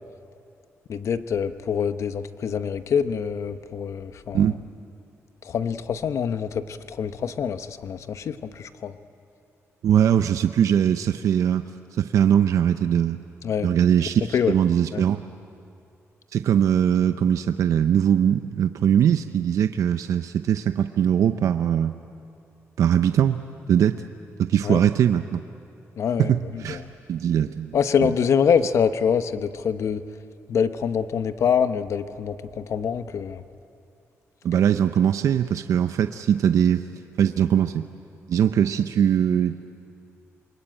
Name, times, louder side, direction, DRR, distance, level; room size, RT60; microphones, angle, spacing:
voice 1, 0.9-4.5 5.4-8.9 13.4-13.7 14.3-14.5 14.9-15.0 24.6-24.8 26.0-26.8 27.7-30.0 30.5-33.4, left 7 dB, 65° left, 10 dB, 1.0 m, -25 dB
voice 2, 9.8-11.6 12.0-13.2 13.6-15.2 16.3-21.9 22.8-23.4 23.7-24.0 24.4-25.4 26.6-26.8 27.1-27.7 34.4-36.9 37.2-37.9 38.3-39.6, right 9 dB, 75° right, 9 dB, 0.7 m, -21 dB
28.0 x 22.5 x 8.9 m, 2.6 s
cardioid pair, 110°, 5 cm